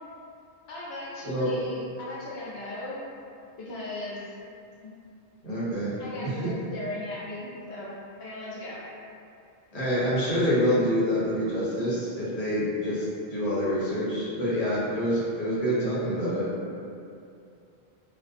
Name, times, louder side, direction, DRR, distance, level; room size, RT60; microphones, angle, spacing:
voice 1, 0.7-3.0 3.6-4.2 4.8-4.9 6.0-7.9 8.2-8.8, left 2 dB, 85° left, -7 dB, 0.8 m, -37 dB
voice 2, 5.4-6.5 9.7-16.4, equal, 45° left, -9 dB, 0.7 m, -27 dB
2.4 x 2.2 x 2.5 m, 2.6 s
omnidirectional pair, 1.0 m